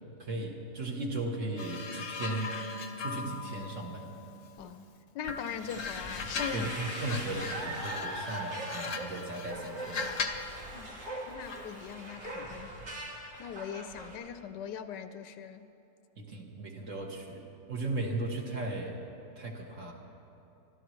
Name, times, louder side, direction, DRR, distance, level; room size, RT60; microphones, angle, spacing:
voice 1, 0.2-2.6 3.0-4.1 6.5-10.1 16.2-19.0 19.4-19.9, right 2 dB, 45° right, 0 dB, 1.7 m, -36 dB
sound 1, 1.6-4.8 5.2-10.5 11.5-11.7, left 5 dB, 55° left, 1.0 m, -39 dB
voice 2, 5.1-6.7 10.7-11.0 11.3-12.7 13.4-15.7, left 8 dB, 80° left, 10 dB, 1.3 m, -40 dB
sound 2, 5.7-14.2, right 1 dB, 70° right, 2.5 m, -41 dB
26.0 x 12.5 x 3.1 m, 2.9 s
omnidirectional pair, 1.9 m